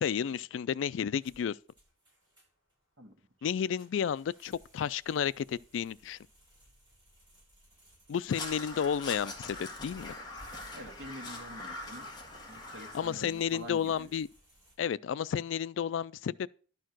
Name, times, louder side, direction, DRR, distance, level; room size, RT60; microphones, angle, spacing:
voice 1, 0.0-1.6 3.4-6.2 8.1-10.1 12.9-14.3 14.8-16.5, left 8 dB, 90° left, 0.3 m, -32 dB
sound 1, 1.2-14.7, equal, 25° right, 6.0 m, -61 dB
Crow, 8.3-13.3, left 2 dB, 25° left, 1.8 m, -43 dB
voice 2, 10.7-12.1 12.5-14.1, equal, 90° right, 1.7 m, -46 dB
11.5 x 4.6 x 6.0 m
head